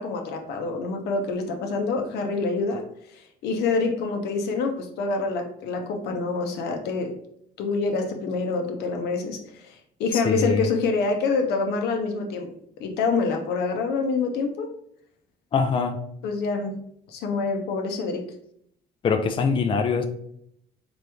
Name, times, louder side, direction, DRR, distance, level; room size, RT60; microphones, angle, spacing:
voice 1, 0.0-2.8 3.1-7.2 7.6-12.5 12.8-14.7 16.2-16.8 17.1-18.3, left 4 dB, 80° left, 4 dB, 0.8 m, -26 dB
voice 2, 10.1-10.7 15.5-16.0 19.0-20.1, left 5 dB, 30° left, 6 dB, 0.4 m, -23 dB
3.9 x 3.1 x 3.5 m, 0.70 s
cardioid pair, 110°, 17 cm